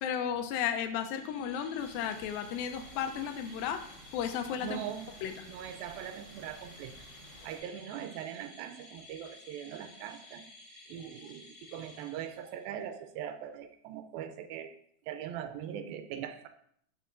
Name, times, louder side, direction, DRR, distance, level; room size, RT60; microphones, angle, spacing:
voice 1, 0.0-3.9 4.1-4.8 5.2-5.3, left 8 dB, 90° left, 8 dB, 2.4 m, -34 dB
sound 1, 0.9-12.7, left 2 dB, 20° right, 3.0 m, -54 dB
sound 2, 1.8-7.6, right 1 dB, 35° right, 2.0 m, -54 dB
voice 2, 4.6-5.1 5.5-7.0 7.4-10.4 10.9-14.7 15.1-16.5, right 9 dB, 85° right, 8 dB, 2.4 m, -41 dB
11.5 x 5.6 x 2.5 m, 0.67 s
omnidirectional pair, 4.1 m